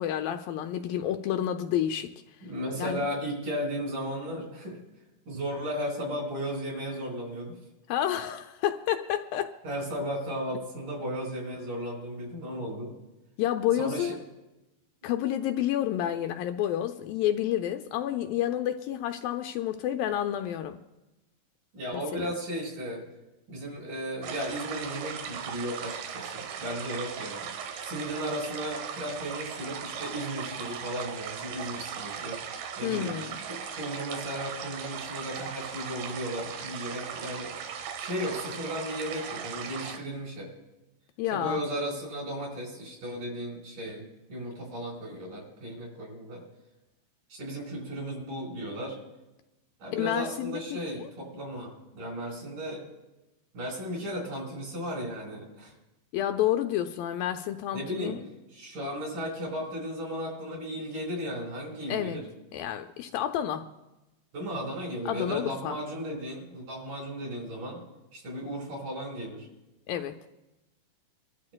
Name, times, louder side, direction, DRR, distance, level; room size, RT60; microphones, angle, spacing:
voice 1, 0.0-2.1 2.8-3.1 7.9-9.5 13.4-14.2 15.0-20.8 22.1-22.3 32.8-33.4 41.2-41.6 49.9-51.1 56.1-58.2 61.9-62.2 62.5-63.7 65.1-65.8 69.9-70.2, left 11 dB, 80° left, 6 dB, 2.2 m, -29 dB
voice 2, 2.4-4.8 5.3-7.5 9.6-12.9 13.8-14.1 21.7-23.0 23.5-27.5 27.8-32.4 32.8-33.2 33.5-40.5 41.3-46.4 47.3-49.0 49.8-52.8 53.5-55.7 57.7-58.2 58.5-62.2 64.3-67.8 68.1-69.5, equal, 60° right, -2 dB, 6.0 m, -35 dB
sound 1, 24.2-40.0, right 7 dB, 80° right, 3.0 m, -38 dB
25.0 x 12.5 x 2.3 m, 1.0 s
omnidirectional pair, 4.3 m